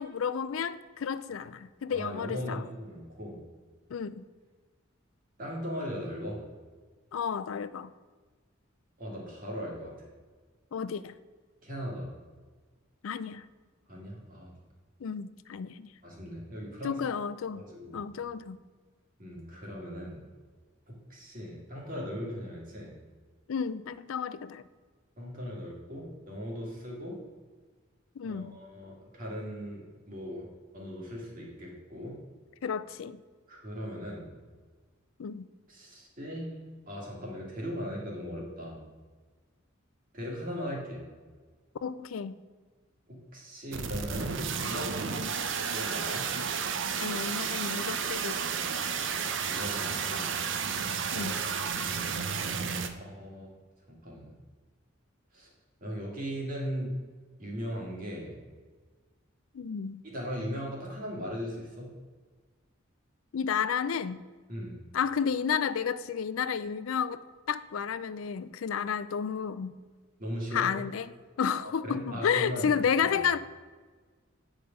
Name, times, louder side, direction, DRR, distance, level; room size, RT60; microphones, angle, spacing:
voice 1, 0.0-2.7 3.9-4.2 7.1-7.9 10.7-11.1 13.0-13.5 15.0-15.9 16.8-17.6 17.9-18.6 23.5-24.7 28.2-28.6 32.6-33.2 35.2-35.5 41.8-42.4 47.0-48.4 51.1-51.4 59.5-60.0 63.3-64.2 64.9-67.2 67.5-69.8 70.5-73.4, left 7 dB, 85° left, 15 dB, 0.4 m, -31 dB
voice 2, 1.9-3.4 5.4-6.4 9.0-9.9 11.6-12.1 13.9-14.5 16.0-17.0 17.5-18.0 19.2-20.2 20.9-22.9 25.2-27.2 28.2-30.5 30.7-32.1 33.5-34.3 35.7-36.5 36.9-38.8 40.1-41.0 43.1-44.9 45.7-46.3 49.4-50.4 51.2-51.8 52.9-53.5 53.9-54.3 55.3-55.5 55.8-56.9 57.4-58.4 60.0-61.9 64.5-64.8 70.2-70.7 71.6-73.1, equal, 45° right, -3 dB, 2.4 m, -38 dB
sound 1, 43.7-52.9, right 6 dB, 60° right, 0.6 m, -32 dB
8.8 x 5.0 x 5.3 m, 1.4 s
head